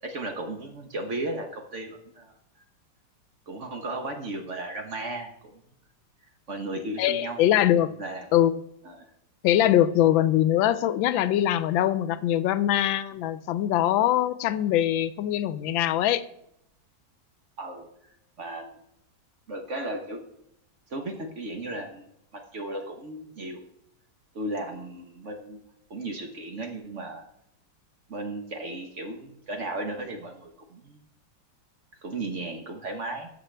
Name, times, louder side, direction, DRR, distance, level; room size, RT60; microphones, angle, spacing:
voice 1, 0.0-2.4 3.5-5.6 6.5-7.4 7.8-8.3 8.8-9.1 17.6-18.1 18.4-18.7 19.5-20.2 20.9-22.1 22.3-23.6 24.3-25.6 25.9-27.2 28.1-31.1 32.0-33.3, right 2 dB, 45° right, 3 dB, 1.1 m, -35 dB
voice 2, 7.0-7.9 8.3-8.5 9.4-16.2, left 12 dB, 85° left, 14 dB, 1.3 m, -22 dB
13.0 x 6.4 x 3.3 m, 0.75 s
omnidirectional pair, 2.1 m